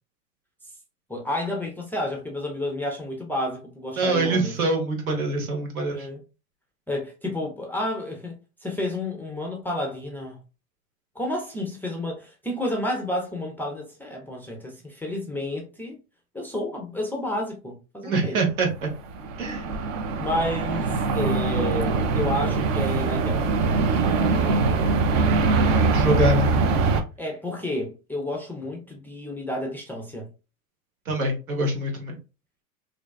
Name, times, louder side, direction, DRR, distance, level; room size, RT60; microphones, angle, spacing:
voice 1, 1.1-4.5 5.9-6.2 6.9-10.4 11.2-16.0 16.3-18.4 20.2-23.4 27.2-30.3, left 1 dB, 5° left, 0.4 m, -30 dB
voice 2, 4.0-6.1 18.0-18.9 19.4-19.7 25.7-26.5 31.1-32.2, right 2 dB, 80° right, 1.0 m, -24 dB
sound 1, 18.8-27.0, right 4 dB, 50° right, 0.5 m, -22 dB
2.6 x 2.1 x 2.3 m
hypercardioid pair, 85°, 42 cm